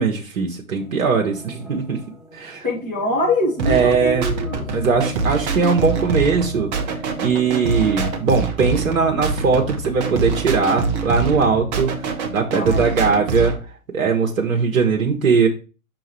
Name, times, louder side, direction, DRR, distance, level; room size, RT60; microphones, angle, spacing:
voice 1, 0.0-2.0 2.3-2.7 3.6-4.3 4.7-13.6 13.9-15.5, right 5 dB, 65° right, 1 dB, 1.2 m, -20 dB
sound 1, 0.8-8.5, left 3 dB, ahead, 0.5 m, -41 dB
voice 2, 2.6-4.7 12.5-12.9, left 1 dB, 20° left, -5 dB, 2.7 m, -23 dB
sound 2, 3.6-13.6, right 4 dB, 30° right, 1.0 m, -25 dB
6.0 x 3.8 x 4.7 m, 0.32 s
figure-of-eight pair, 120°, 43 cm